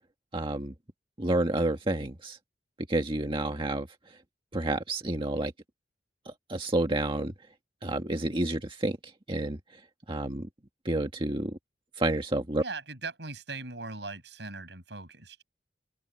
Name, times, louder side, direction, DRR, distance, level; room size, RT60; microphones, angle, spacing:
voice 1, 0.3-0.7 1.2-2.4 2.9-3.9 4.5-5.5 6.2-7.3 7.8-9.0 9.3-9.6 10.1-10.5 10.8-11.5 12.0-12.6, right 1 dB, 30° right, 1.7 m, -29 dB
voice 2, 12.6-15.4, right 3 dB, 75° right, 7.3 m, -40 dB
open air
head